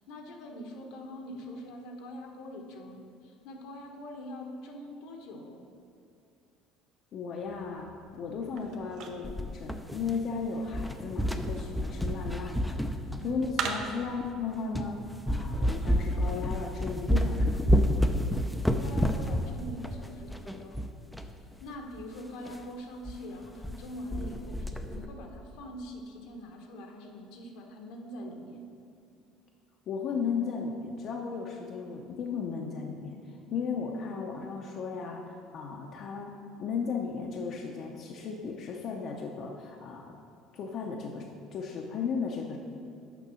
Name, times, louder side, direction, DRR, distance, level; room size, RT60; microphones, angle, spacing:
voice 1, 0.1-5.6 13.1-13.4 18.8-20.8 21.6-28.6, equal, 80° left, 2 dB, 1.1 m, -43 dB
voice 2, 7.1-12.8 13.2-15.0 15.3-17.9 29.9-36.3 36.6-40.2 40.5-42.6, left 5 dB, 50° left, 0 dB, 0.7 m, -35 dB
sound 1, 7.4-14.3, right 5 dB, 60° right, 0.8 m, -42 dB
sound 2, 9.2-10.4 10.7-13.7 14.2-14.3 14.7-14.9 15.3-21.3 21.6-21.7 21.9-22.0 22.5-22.6 23.0-23.2 23.4-23.8 24.1-25.1, equal, ahead, 0.5 m, -29 dB
6.8 x 5.3 x 6.2 m, 2.4 s
cardioid pair, 110°, 0 cm